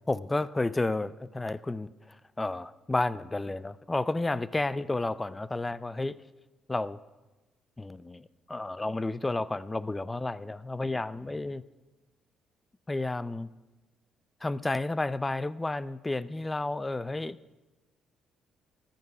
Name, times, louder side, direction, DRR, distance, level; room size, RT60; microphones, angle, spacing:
voice 1, 0.1-6.2 6.7-7.0 7.8-11.6 12.9-13.5 14.4-17.4, left 2 dB, 15° left, 17 dB, 0.4 m, -31 dB
14.0 x 12.0 x 5.5 m, 1.1 s
cardioid pair, 145°, 0 cm